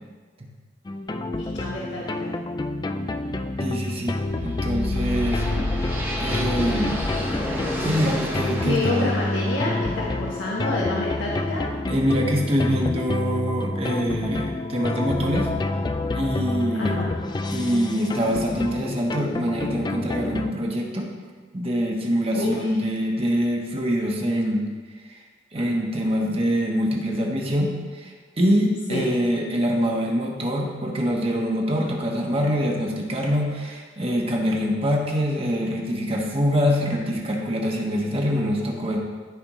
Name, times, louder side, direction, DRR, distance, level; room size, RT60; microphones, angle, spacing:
sound 1, 0.8-20.5, left 2 dB, 20° left, 0.3 m, -28 dB
voice 1, 1.4-2.3 8.6-11.7 16.7-17.1 22.3-22.7 28.9-29.0, left 2 dB, 80° left, -5 dB, 1.3 m, -28 dB
voice 2, 3.6-5.5 6.2-7.0 7.8-9.1 11.9-15.5 16.1-17.1 17.5-21.1 21.5-24.7 25.1-25.2 25.5-39.0, equal, 30° right, 0 dB, 1.2 m, -24 dB
sound 2, 4.2-12.2, equal, 10° right, 1.0 m, -34 dB
14.0 x 5.1 x 3.1 m, 1.5 s
head